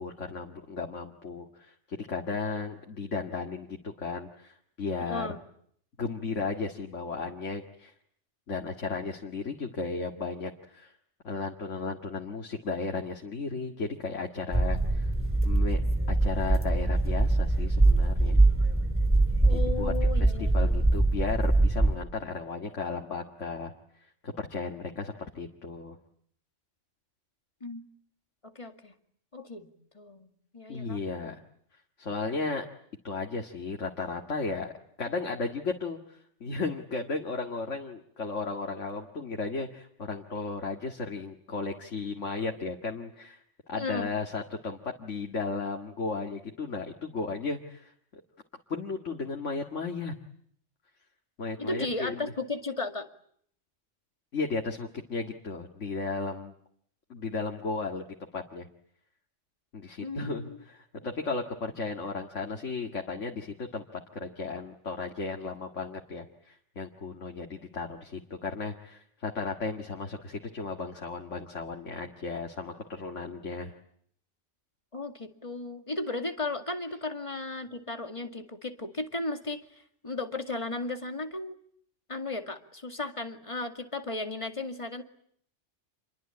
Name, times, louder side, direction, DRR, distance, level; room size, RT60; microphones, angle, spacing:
voice 1, 0.0-5.3 6.0-7.9 8.5-10.9 11.2-15.1 15.4-15.8 16.1-18.4 19.4-19.9 20.2-23.7 24.2-26.0 30.7-31.4 32.0-32.6 33.0-34.7 35.0-43.4 43.7-48.2 48.7-50.1 51.4-52.3 54.3-56.5 57.1-58.1 58.3-58.7 59.7-63.8 64.1-73.7, left 4 dB, 85° left, 2 dB, 2.3 m, -35 dB
voice 2, 5.0-5.4 19.4-20.7 27.6-27.9 28.4-28.9 29.3-30.3 30.5-31.0 43.7-44.1 51.6-53.1 60.0-60.6 74.9-79.6 80.0-81.6 82.1-85.0, left 2 dB, 25° left, 6 dB, 2.3 m, -35 dB
sound 1, 14.5-22.0, right 2 dB, 10° right, 3.2 m, -23 dB
28.0 x 22.5 x 8.6 m, 0.66 s
omnidirectional pair, 1.2 m